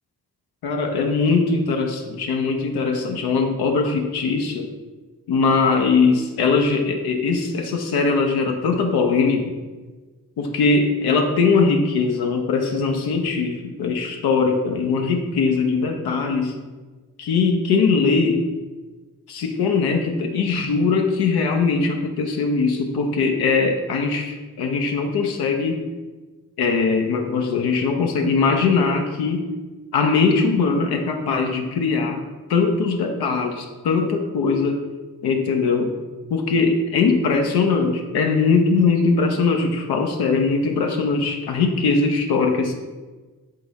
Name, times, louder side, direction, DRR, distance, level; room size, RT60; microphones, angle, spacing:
voice 1, 0.6-4.7 5.3-9.6 10.4-16.6 17.2-18.5 19.3-25.8 26.6-29.4 29.9-32.2 32.5-34.8 35.2-36.0 36.3-42.7, left 4 dB, 85° left, 3 dB, 0.5 m, -21 dB
3.7 x 3.6 x 3.9 m, 1.3 s
supercardioid pair, 40°, 37 cm